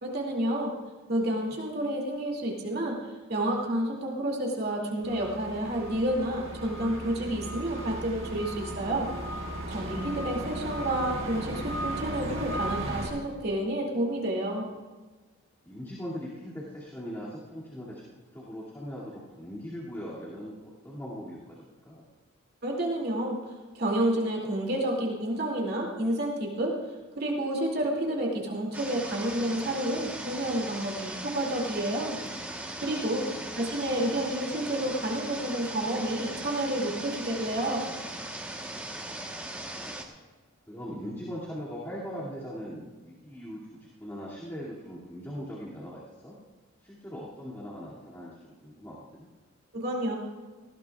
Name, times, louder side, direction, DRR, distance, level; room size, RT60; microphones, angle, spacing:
voice 1, 0.0-0.7 1.1-2.9 3.3-9.1 9.7-14.7 22.6-23.4 23.7-26.8 27.2-32.5 32.8-33.2 33.5-37.8 49.7-50.1, right 1 dB, 50° right, -1 dB, 2.5 m, -30 dB
sound 1, 5.0-13.1, right 1 dB, 70° right, 5.0 m, -36 dB
voice 2, 15.6-18.0 18.3-22.0 32.8-33.5 40.7-46.4 46.8-49.3, equal, 10° left, -8 dB, 2.3 m, -40 dB
sound 2, 28.7-40.0, right 1 dB, 10° right, 1.1 m, -39 dB
19.0 x 15.5 x 2.4 m, 1.3 s
head